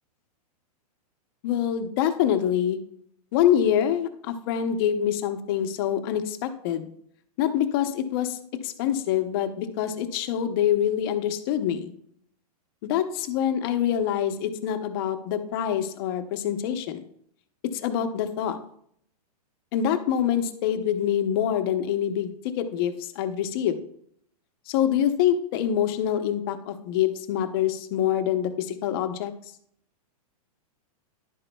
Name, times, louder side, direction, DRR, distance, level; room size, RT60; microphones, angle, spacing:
voice 1, 1.4-2.8 3.3-6.9 7.4-8.4 8.6-11.9 12.8-17.0 17.6-18.6 19.7-23.8 24.7-29.3, left 10 dB, 35° left, 8 dB, 0.7 m, -25 dB
11.0 x 8.0 x 2.2 m, 0.67 s
hypercardioid pair, 160°, 20 cm